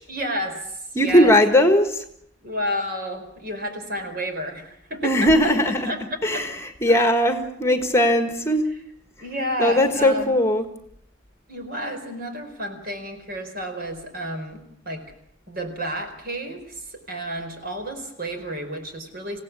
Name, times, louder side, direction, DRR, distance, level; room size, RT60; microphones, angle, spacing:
voice 1, 0.1-1.3 2.4-5.3 5.8-6.0 6.3-6.4 6.9-7.1 9.2-10.4 11.5-15.0 15.5-19.4, equal, 50° right, 6 dB, 4.8 m, -31 dB
voice 2, 0.9-2.0 5.0-5.9 6.2-8.7 9.6-10.6, left 1 dB, 15° left, 7 dB, 1.5 m, -19 dB
27.0 x 16.5 x 8.5 m, 0.71 s
head